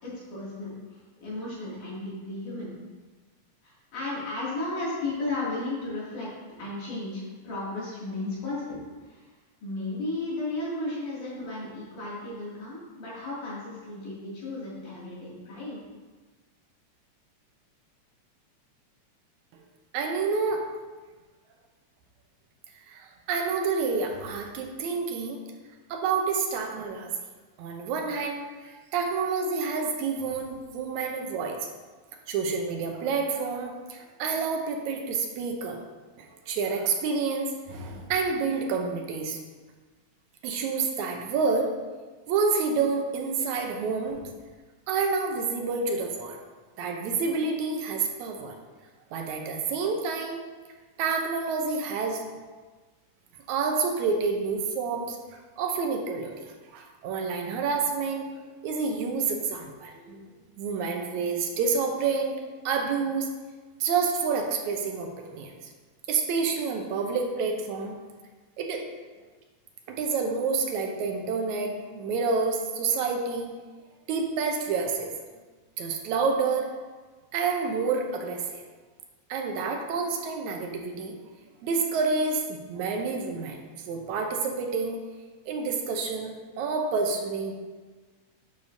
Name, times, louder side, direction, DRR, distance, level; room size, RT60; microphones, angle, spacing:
voice 1, 0.0-2.7 3.6-6.3 6.6-8.8 9.1-9.3 9.6-15.8, left 2 dB, 85° left, -8 dB, 4.2 m, -34 dB
voice 2, 19.9-20.7 22.9-25.4 25.9-27.1 27.6-31.7 32.3-35.8 36.2-39.4 40.4-41.7 42.3-44.3 44.9-46.4 46.8-48.6 49.1-50.4 51.0-52.2 53.5-55.2 55.6-60.3 60.6-63.3 63.8-65.5 66.1-67.9 68.6-68.8 69.9-73.5 74.1-75.1 75.8-76.7 77.3-78.6 79.3-81.2 81.6-85.0 85.5-86.3 86.6-87.5, right 4 dB, 80° right, 2 dB, 2.1 m, -28 dB
9.9 x 6.5 x 2.7 m, 1.3 s
omnidirectional pair, 3.4 m